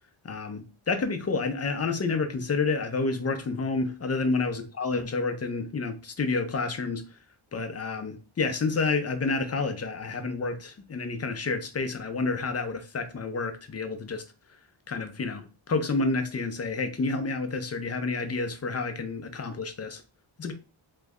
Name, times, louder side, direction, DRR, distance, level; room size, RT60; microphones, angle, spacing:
voice 1, 0.2-7.0 7.5-14.2 14.9-20.0 20.4-20.5, left 3 dB, 30° left, 0.6 m, -29 dB
3.1 x 2.1 x 3.6 m
cardioid pair, 75°, 48 cm